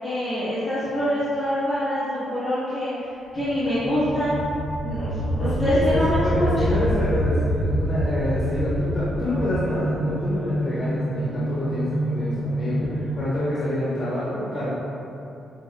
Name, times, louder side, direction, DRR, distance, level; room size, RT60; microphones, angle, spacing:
voice 1, 0.0-2.9 3.3-4.3 4.8-6.8, equal, 20° left, -13 dB, 1.2 m, -25 dB
sound 1, 3.6-10.4, equal, 35° right, 0.6 m, -27 dB
sound 2, 3.7-13.2, right 1 dB, 55° right, 1.4 m, -30 dB
voice 2, 5.4-12.8 13.1-14.7, left 1 dB, 40° left, -10 dB, 1.3 m, -27 dB
6.7 x 2.8 x 2.3 m, 2.8 s
supercardioid pair, 65°, 0 cm